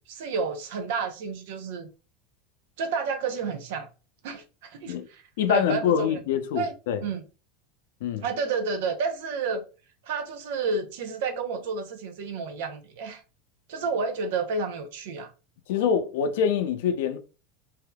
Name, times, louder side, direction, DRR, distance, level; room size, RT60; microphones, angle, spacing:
voice 1, 0.1-1.9 2.8-3.9 4.2-5.2 5.5-6.2 6.5-6.7 7.0-7.2 8.2-9.6 10.0-13.2 13.7-15.3, right 4 dB, 70° right, 0.7 m, -30 dB
voice 2, 5.4-7.0 8.0-8.3 15.7-17.2, left 8 dB, 80° left, 0.5 m, -25 dB
3.4 x 2.7 x 2.2 m
supercardioid pair, 165°, 0 cm